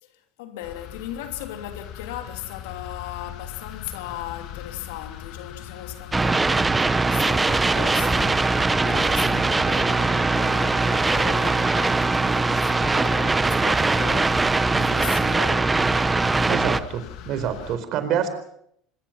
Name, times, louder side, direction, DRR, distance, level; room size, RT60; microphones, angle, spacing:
voice 1, 0.0-15.7, left 11 dB, 85° left, 3.0 m, -37 dB
sound 1, 0.6-17.8, left 10 dB, 65° left, 2.5 m, -40 dB
sound 2, 6.1-16.8, right 3 dB, 15° right, 1.1 m, -21 dB
sound 3, 8.0-9.3 9.6-10.4 12.5-13.7 14.5-15.3, left 3 dB, 20° left, 4.9 m, -41 dB
voice 2, 16.4-18.3, right 8 dB, 60° right, 4.3 m, -27 dB
25.5 x 21.5 x 5.9 m
supercardioid pair, 100°, 0 cm